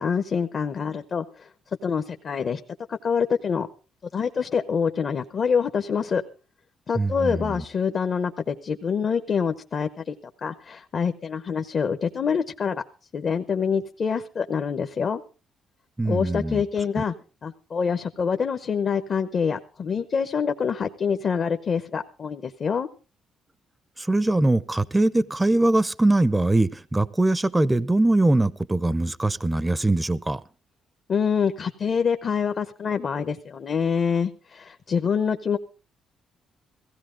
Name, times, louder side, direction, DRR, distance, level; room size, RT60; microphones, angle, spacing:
voice 1, 0.0-1.5 1.8-2.6 2.9-3.7 4.1-6.2 6.9-10.1 10.4-12.8 13.1-15.2 16.1-17.1 17.4-22.9 31.1-35.6, left 6 dB, 50° left, 0.9 m, -26 dB
voice 2, 7.0-7.6 16.0-16.6 17.0-17.1 24.0-30.4, right 2 dB, 15° right, 0.6 m, -22 dB
16.0 x 16.0 x 3.8 m
cardioid pair, 90°, 0 cm